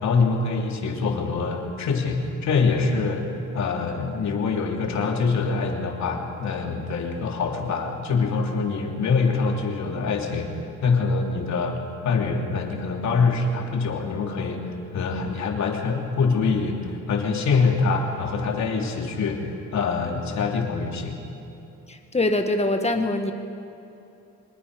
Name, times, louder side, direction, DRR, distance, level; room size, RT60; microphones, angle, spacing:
voice 1, 0.0-10.5 10.8-19.4 19.7-21.2, left 4 dB, 65° left, 1 dB, 3.3 m, -24 dB
voice 2, 21.9-23.3, left 2 dB, 20° left, 5 dB, 1.8 m, -23 dB
24.0 x 21.0 x 5.4 m, 2.8 s
cardioid pair, 90°, 30 cm